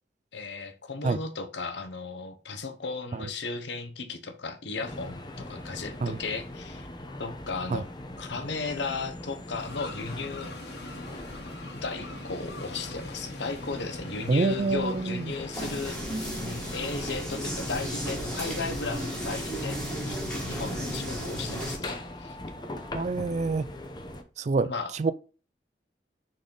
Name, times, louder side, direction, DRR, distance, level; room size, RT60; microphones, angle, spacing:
voice 1, 0.3-6.9 7.2-7.9 8.2-10.5 11.8-16.3 16.7-22.4 24.6-24.9, left 4 dB, 90° left, 1.0 m, -35 dB
sound 1, 4.8-24.2, left 1 dB, 25° left, 0.8 m, -41 dB
sound 2, 9.6-16.9, left 2 dB, 70° left, 1.5 m, -44 dB
voice 2, 14.3-15.3 22.9-23.7 24.4-25.1, right 3 dB, 40° right, 0.4 m, -27 dB
sound 3, 15.5-21.8, equal, 5° left, 2.2 m, -34 dB
6.4 x 4.2 x 3.9 m
head